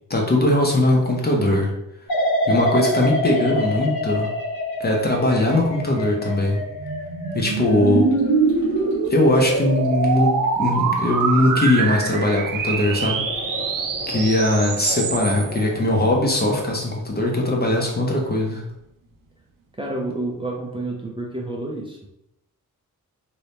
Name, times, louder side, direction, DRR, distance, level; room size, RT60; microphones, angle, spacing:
voice 1, 0.1-1.7 2.5-4.3 4.8-6.6 7.3-8.1 9.1-13.3 14.1-18.6, left 1 dB, 30° left, 0 dB, 0.7 m, -20 dB
sound 1, 2.1-9.0 9.4-9.9, left 1 dB, 80° left, 0.9 m, -27 dB
sound 2, 6.1-15.6, right 5 dB, 65° right, 0.5 m, -24 dB
sound 3, 7.8-16.4, left 2 dB, 55° left, 1.2 m, -38 dB
voice 2, 19.8-22.0, right 2 dB, 15° right, -2 dB, 0.5 m, -29 dB
2.9 x 2.7 x 3.4 m, 0.82 s
wide cardioid pair, 110°, 35 cm